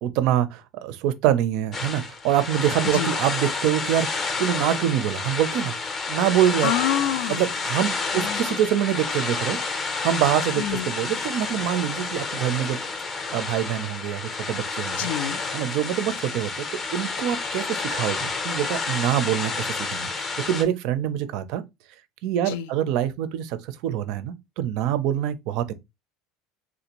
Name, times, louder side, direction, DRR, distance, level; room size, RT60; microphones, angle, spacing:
voice 1, 0.0-5.7 6.1-6.7 7.3-9.6 10.0-12.8 13.3-15.1 15.5-16.6 16.9-21.6 22.2-25.7, right 11 dB, 50° right, 0.4 m, -25 dB
sound 1, 1.7-20.6, left 4 dB, 20° left, 0.5 m, -30 dB
voice 2, 6.6-7.4 8.1-8.6 10.6-10.9 15.0-15.4 22.5-22.7, left 11 dB, 80° left, 0.4 m, -27 dB
3.4 x 2.5 x 2.9 m
cardioid pair, 175°, 0 cm